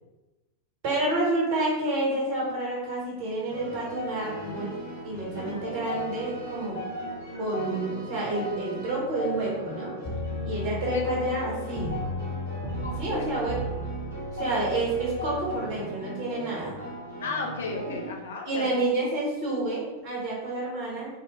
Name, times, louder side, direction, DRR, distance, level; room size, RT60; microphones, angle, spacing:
voice 1, 0.8-4.8 5.0-6.8 7.4-9.9 10.4-12.0 13.0-13.8 14.3-16.8 18.4-21.1, right 2 dB, 50° right, -4 dB, 1.3 m, -29 dB
sound 1, 3.5-18.1, left 1 dB, 80° right, 1.0 m, -37 dB
sound 2, 10.0-15.6, left 1 dB, 20° right, 0.9 m, -35 dB
voice 2, 12.8-13.3 17.2-18.8, left 4 dB, 65° left, 1 dB, 0.4 m, -34 dB
3.6 x 2.1 x 3.0 m, 1.1 s
figure-of-eight pair, 90°, 0 cm